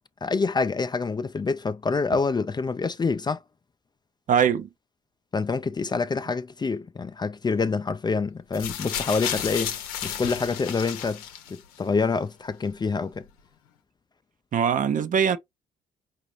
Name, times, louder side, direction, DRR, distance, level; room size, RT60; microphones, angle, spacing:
voice 1, 0.2-3.4 5.3-11.2 11.5-13.3, left 4 dB, 25° left, 0.4 m, -26 dB
voice 2, 4.3-4.7 14.5-15.4, right 7 dB, 45° right, 0.6 m, -22 dB
sound 1, 8.5-11.8 12.7-12.8, left 9 dB, 80° left, 0.7 m, -32 dB
4.8 x 2.6 x 3.2 m
hypercardioid pair, 50°, 19 cm